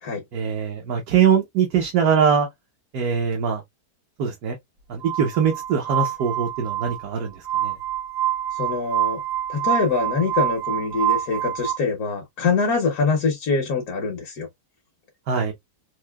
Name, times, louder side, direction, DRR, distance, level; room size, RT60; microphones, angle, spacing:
voice 1, 0.3-2.5 2.9-3.6 4.2-4.6 4.9-7.7 15.3-15.5, right 7 dB, 70° right, 1.3 m, -22 dB
Glass, 5.0-11.7, right 12 dB, 90° right, 1.6 m, -26 dB
voice 2, 8.5-9.2 9.5-14.5, left 4 dB, 70° left, 1.4 m, -24 dB
4.6 x 2.7 x 2.2 m
omnidirectional pair, 1.7 m